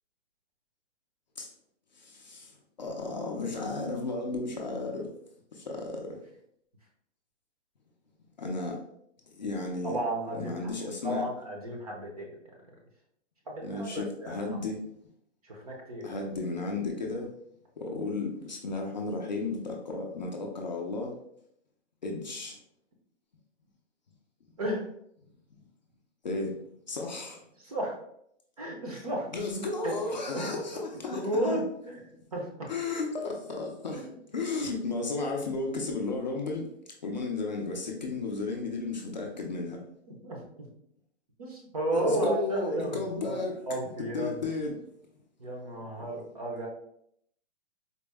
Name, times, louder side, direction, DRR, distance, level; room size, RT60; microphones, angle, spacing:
voice 1, 1.9-2.5 2.8-5.1 5.5-6.2 8.4-8.8 9.4-10.0 10.3-11.2 13.6-14.9 16.0-17.3 17.8-21.2 22.0-22.6 26.2-26.6 26.9-27.4 29.3-31.6 32.7-36.7 37.0-39.8 41.9-43.7 44.1-44.8 46.0-46.1, left 3 dB, 40° left, 0 dB, 0.5 m, -34 dB
voice 2, 9.8-12.3 13.5-14.6 15.4-16.1 24.6-24.8 27.6-28.0 28.6-29.3 29.8-29.9 30.3-30.5 31.1-32.0 32.3-32.7 33.9-34.2 40.1-40.4 41.4-43.0 43.2-43.4 43.7-44.4 45.4-46.7, right 1 dB, 30° right, 0 dB, 0.6 m, -33 dB
4.1 x 2.0 x 3.3 m, 0.71 s
hypercardioid pair, 175°, 36 cm